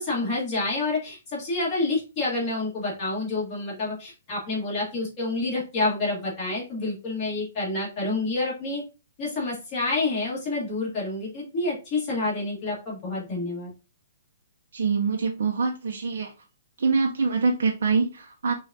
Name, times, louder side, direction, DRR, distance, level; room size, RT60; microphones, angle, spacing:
voice 1, 0.0-8.8 9.2-13.7, left 2 dB, 25° left, -5 dB, 1.6 m, -28 dB
voice 2, 14.7-16.3 16.8-18.5, right 4 dB, 75° right, 2 dB, 0.6 m, -24 dB
5.1 x 2.3 x 2.7 m, 0.31 s
hypercardioid pair, 170°, 0 cm